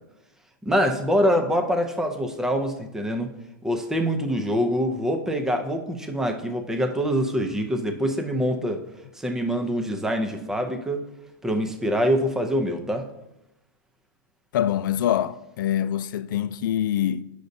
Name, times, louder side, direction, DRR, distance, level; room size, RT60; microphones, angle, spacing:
voice 1, 0.6-3.3 3.6-8.8 9.2-11.0 11.4-13.1, equal, 5° right, 0.6 m, -25 dB
voice 2, 14.5-17.2, left 11 dB, 65° left, 0.4 m, -25 dB
9.2 x 6.5 x 2.7 m
hypercardioid pair, 145°, 12 cm